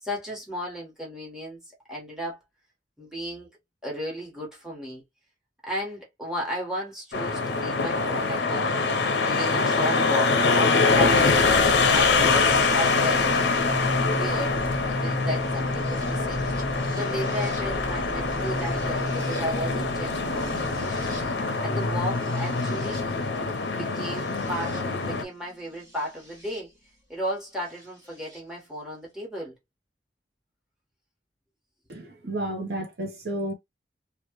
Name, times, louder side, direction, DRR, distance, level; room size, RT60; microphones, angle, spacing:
voice 1, 0.0-1.6 1.9-2.4 3.0-3.5 3.8-5.0 5.6-8.8 9.2-11.2 11.9-13.3 14.1-14.7 14.9-16.5 17.0-21.2 21.4-23.1 23.7-26.7 27.1-29.5, equal, 5° right, 1.3 m, -34 dB
sound 1, 7.1-25.2, left 4 dB, 85° left, 0.6 m, -24 dB
sound 2, 10.9-26.6 27.8-28.4, left 1 dB, 20° right, 1.2 m, -35 dB
voice 2, 31.9-33.5, right 1 dB, 65° right, 0.9 m, -31 dB
2.9 x 2.4 x 3.0 m
head